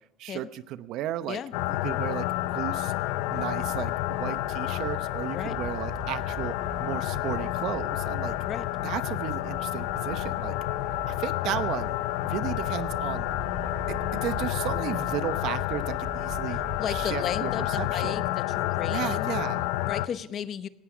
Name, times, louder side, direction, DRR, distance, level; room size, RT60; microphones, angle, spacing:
voice 1, 0.2-1.4 1.7-2.9 3.3-6.5 6.8-8.4 8.8-10.6 11.1-12.0 12.2-13.3 13.9-16.6 16.9-18.2 18.9-19.7, right 12 dB, 60° right, 13 dB, 0.8 m, -34 dB
sound 1, 1.5-20.1, left 16 dB, 80° left, 0.6 m, -30 dB
sound 2, 3.3-18.3, right 5 dB, 35° right, 1.9 m, -43 dB
voice 2, 16.8-19.3 19.8-20.7, left 8 dB, 40° left, 14 dB, 0.8 m, -34 dB
17.5 x 13.5 x 5.0 m, 0.89 s
cardioid pair, 125°, 0 cm